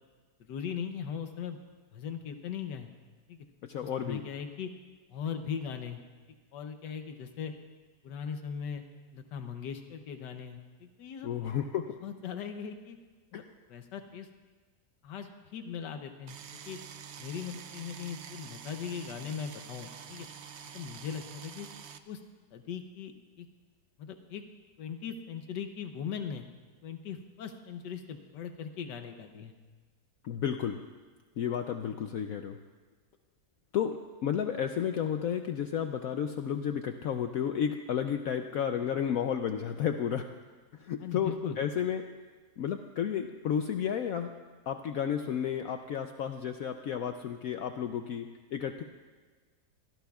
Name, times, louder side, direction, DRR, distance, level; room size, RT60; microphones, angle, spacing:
voice 1, 0.4-1.6 1.9-2.9 3.3-3.5 4.0-4.7 5.1-6.0 6.5-7.5 8.0-8.8 9.1-11.3 12.0-13.0 13.3-13.4 13.7-14.3 15.0-16.4 16.7-16.8 17.2-20.3 20.7-21.7 22.1-22.2 22.5-23.1 23.4-23.5 24.0-24.4 24.8-26.4 26.8-29.5 41.0-41.6, left 7 dB, 85° left, 7 dB, 1.4 m, -39 dB
voice 2, 3.6-4.2 11.2-12.0 13.3-13.4 30.2-30.8 31.4-32.6 33.7-34.0 34.2-40.3 40.7-42.0 42.6-44.3 44.7-48.8, left 8 dB, 65° left, 6 dB, 0.9 m, -32 dB
sound 1, 16.3-22.0, right 7 dB, 60° right, 0.7 m, -47 dB
24.5 x 17.0 x 2.4 m, 1.4 s
omnidirectional pair, 1.8 m